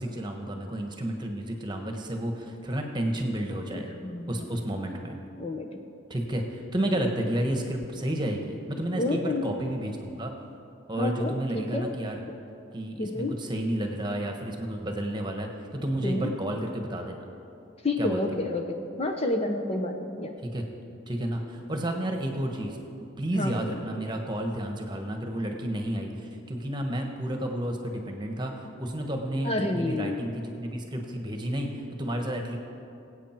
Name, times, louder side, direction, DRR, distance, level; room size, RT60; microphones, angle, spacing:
voice 1, 0.0-3.9 4.3-5.2 6.1-10.3 10.9-12.2 12.7-17.2 18.0-18.2 20.4-20.6 21.1-22.8 23.2-32.6, right 1 dB, 20° right, 3 dB, 1.3 m, -31 dB
voice 2, 3.7-4.5 5.4-5.7 8.9-9.6 11.0-11.9 13.0-13.4 16.0-16.3 17.8-20.3 23.3-23.8 29.4-30.2, left 2 dB, 30° left, 4 dB, 0.7 m, -30 dB
23.5 x 8.4 x 4.5 m, 2.7 s
head